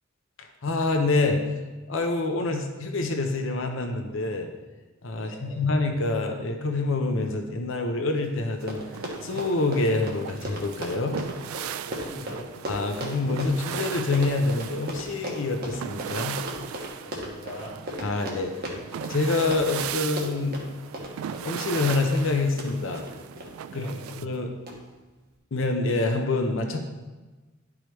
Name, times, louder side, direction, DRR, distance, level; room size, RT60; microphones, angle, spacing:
voice 1, 0.6-1.4 1.9-4.5 5.0-8.8 9.2-11.2 12.7-16.4 18.0-18.5 19.1-20.6 21.4-23.0 23.7-23.8 24.2-24.5 25.5-26.8, left 3 dB, 65° left, 4 dB, 0.7 m, -26 dB
voice 2, 5.1-5.6 11.8-12.4 17.0-17.8 23.7-24.1, equal, 30° left, -7 dB, 2.3 m, -41 dB
Run, 8.2-8.3 8.5-23.5 24.1-24.4 24.7-24.8, equal, 50° right, 1.3 m, -36 dB
sound 1, 8.7-24.2, right 9 dB, 85° right, 0.3 m, -38 dB
10.5 x 4.9 x 3.1 m, 1.2 s
head